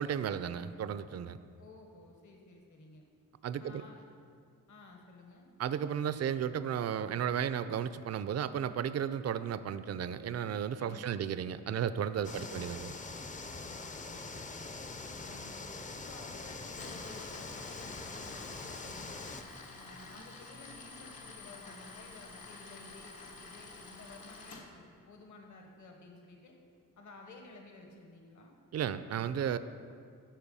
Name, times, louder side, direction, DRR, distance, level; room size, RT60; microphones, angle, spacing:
voice 1, 0.0-1.4 3.4-3.8 5.6-12.9 28.7-29.6, right 8 dB, 50° right, 13 dB, 0.4 m, -34 dB
voice 2, 1.6-3.0 3.6-4.0 4.7-5.5 10.8-11.3 12.2-12.6 13.6-14.6 15.1-15.6 15.9-19.4 19.7-26.5 27.0-28.6, left 3 dB, 55° left, 2 dB, 1.2 m, -54 dB
sound 1, 12.2-19.4, left 3 dB, 20° left, 0.5 m, -43 dB
Tools, 16.6-24.6, left 3 dB, 75° left, 1.4 m, -50 dB
11.5 x 4.7 x 5.5 m, 2.3 s
cardioid pair, 75°, 35 cm